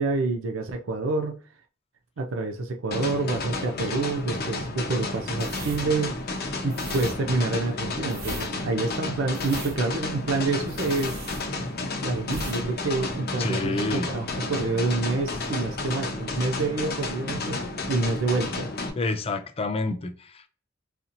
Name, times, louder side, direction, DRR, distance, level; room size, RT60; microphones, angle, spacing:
voice 1, 0.0-1.4 2.2-6.2 6.6-11.2 12.0-17.6 17.9-18.7, right 3 dB, 70° right, 0.5 m, -27 dB
sound 1, 2.9-18.9, left 2 dB, 50° left, 0.8 m, -32 dB
sound 2, 5.3-11.9 12.2-12.6 12.9-13.1, right 2 dB, 50° right, 1.0 m, -39 dB
voice 2, 13.4-14.1 19.0-20.5, left 2 dB, 30° left, 0.4 m, -29 dB
4.1 x 2.8 x 2.6 m
head